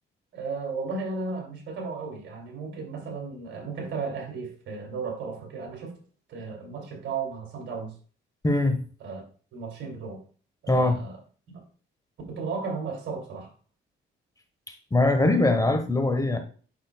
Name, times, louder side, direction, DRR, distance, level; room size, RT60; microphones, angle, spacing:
voice 1, 0.3-5.9 6.3-7.9 9.0-9.2 9.5-10.2 10.6-11.2 11.5-11.6 12.3-13.5, right 4 dB, 70° right, 2 dB, 2.6 m, -34 dB
voice 2, 8.4-8.8 10.7-11.0 14.9-16.4, left 2 dB, 15° left, 7 dB, 1.1 m, -22 dB
8.0 x 6.2 x 2.2 m, 0.40 s
cardioid pair, 90°, 20 cm